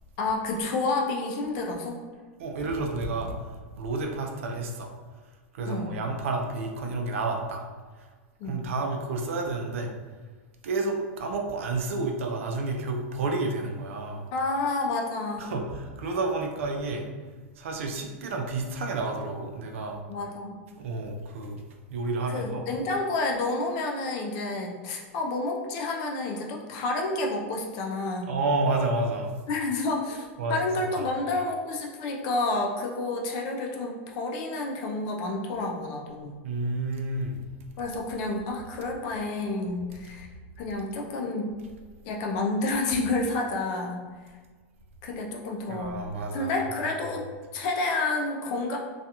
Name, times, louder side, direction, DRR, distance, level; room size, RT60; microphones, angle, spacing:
voice 1, 0.2-2.0 5.6-5.9 8.4-8.6 14.3-15.5 20.1-20.6 22.3-28.3 29.5-36.3 37.8-40.3 40.6-41.5 42.0-44.0 45.0-46.0 46.3-47.2 47.5-48.8, left 2 dB, 50° left, 0 dB, 0.5 m, -29 dB
voice 2, 2.4-3.3 3.7-4.9 5.5-7.6 8.4-9.9 10.6-14.3 15.4-17.1 17.6-20.0 20.7-21.6 21.9-22.6 28.3-29.3 30.4-30.7 31.0-31.1 36.4-37.4 45.7-46.5, right 3 dB, 85° right, 2 dB, 0.5 m, -30 dB
2.4 x 2.3 x 2.8 m, 1.4 s
supercardioid pair, 145°, 7 cm